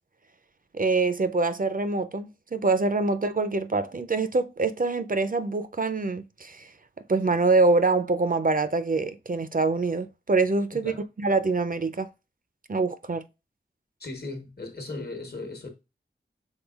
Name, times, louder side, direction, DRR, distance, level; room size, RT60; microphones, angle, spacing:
voice 1, 0.7-6.7 7.1-10.9 11.2-12.1 12.7-13.2, right 3 dB, 45° right, 0.4 m, -25 dB
voice 2, 14.0-15.7, left 2 dB, 55° left, 1.1 m, -37 dB
5.4 x 3.7 x 2.4 m
wide cardioid pair, 55°, 20 cm